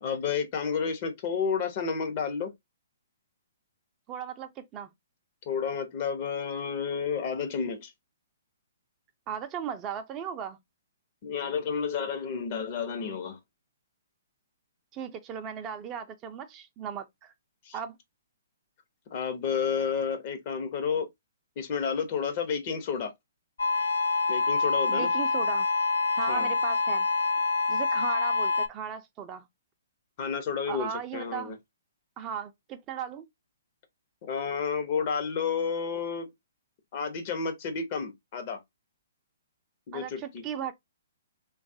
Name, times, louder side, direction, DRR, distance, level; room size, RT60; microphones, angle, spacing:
voice 1, 0.0-2.5 5.5-7.9 11.2-13.4 17.6-17.7 19.1-21.1 21.6-23.1 24.3-25.1 26.3-26.5 30.2-31.6 34.2-36.3 36.9-38.6 39.9-40.2, left 6 dB, 40° left, 0.8 m, -31 dB
voice 2, 4.1-4.9 9.3-10.6 14.9-17.3 17.7-17.9 24.9-25.7 26.2-27.1 27.7-29.5 30.7-31.6 32.2-33.3 39.9-40.7, right 8 dB, 25° right, 0.4 m, -37 dB
sound 1, 23.6-28.7, left 4 dB, 75° left, 0.4 m, -26 dB
3.1 x 2.3 x 2.6 m
figure-of-eight pair, 125°, 0 cm